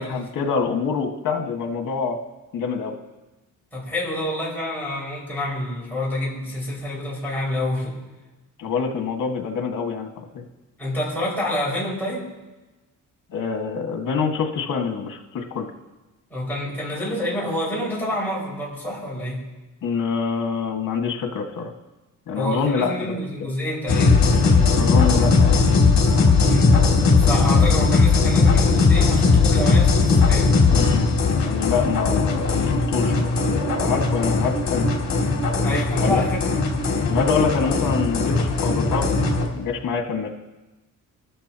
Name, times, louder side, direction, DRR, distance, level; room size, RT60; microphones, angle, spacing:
voice 1, 0.0-2.2 2.5-2.9 8.6-10.4 13.3-15.7 19.8-21.7 22.3-23.1 23.4-23.5 24.7-25.6 30.7-35.0 36.0-36.2 37.1-39.2 39.6-40.3, left 5 dB, 70° left, 3 dB, 1.8 m, -26 dB
voice 2, 3.7-8.0 10.8-12.3 16.3-19.5 22.3-24.4 26.4-26.8 27.2-30.6 35.6-36.8, left 1 dB, 5° left, -7 dB, 5.7 m, -28 dB
sound 1, 23.9-39.5, left 4 dB, 55° left, 2.7 m, -18 dB
25.0 x 13.0 x 3.0 m, 1.1 s
cardioid pair, 150°, 33 cm